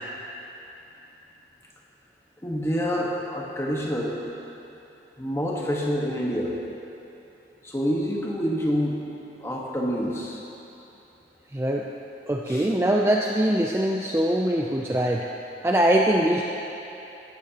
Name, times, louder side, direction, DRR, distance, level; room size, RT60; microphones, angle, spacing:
voice 1, 2.4-4.2 5.2-6.6 7.6-9.0 9.4-10.4 12.5-12.7, equal, 15° left, -3 dB, 1.3 m, -27 dB
voice 2, 11.5-11.9 12.3-15.3 15.6-16.4, right 1 dB, 15° right, -1 dB, 0.4 m, -22 dB
16.0 x 12.5 x 2.9 m, 3.0 s
head